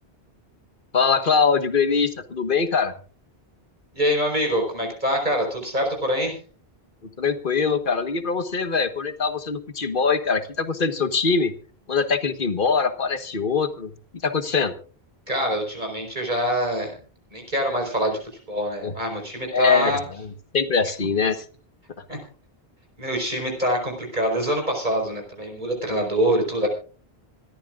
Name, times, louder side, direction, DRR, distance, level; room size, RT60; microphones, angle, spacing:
voice 1, 0.9-2.9 7.2-11.5 11.9-13.9 14.2-14.7 18.8-18.9 19.5-21.4, left 5 dB, 55° left, 10 dB, 1.5 m, -23 dB
voice 2, 3.9-6.4 15.3-16.9 17.3-18.2 18.5-20.0 22.1-22.2 23.0-26.7, equal, 45° right, 1 dB, 4.9 m, -25 dB
26.0 x 13.5 x 2.5 m, 0.38 s
omnidirectional pair, 1.1 m